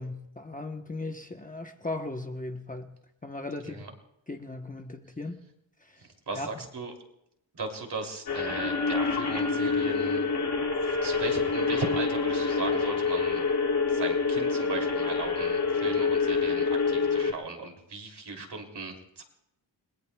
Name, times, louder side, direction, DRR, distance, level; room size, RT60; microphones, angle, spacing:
voice 1, 0.0-2.9 3.2-3.8 4.3-5.4 5.8-6.0 6.3-6.5, left 2 dB, 20° left, 4 dB, 0.9 m, -37 dB
voice 2, 6.0-6.9 7.5-10.2 10.8-13.5 13.9-19.2, right 3 dB, 55° right, 2 dB, 2.9 m, -37 dB
sound 1, 8.3-17.3, left 4 dB, 55° left, 2.4 m, -27 dB
30.0 x 21.0 x 2.3 m, 0.82 s
wide cardioid pair, 155°, 46 cm